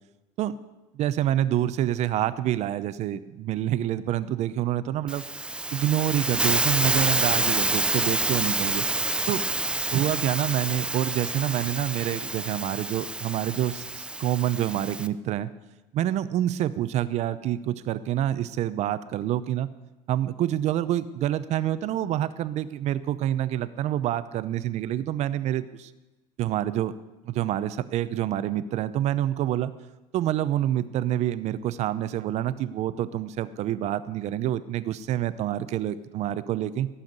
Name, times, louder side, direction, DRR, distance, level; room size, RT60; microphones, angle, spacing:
voice 1, 0.9-5.2 5.7-8.9 9.3-9.4 9.9-15.5 15.9-19.7 20.1-25.9 26.4-26.9 27.2-29.7 30.1-36.9, right 12 dB, 50° right, 14 dB, 0.7 m, -27 dB
Hiss, 5.1-15.1, right 2 dB, 5° right, 0.4 m, -28 dB
17.0 x 5.7 x 7.9 m, 1.1 s
cardioid pair, 120°, 14 cm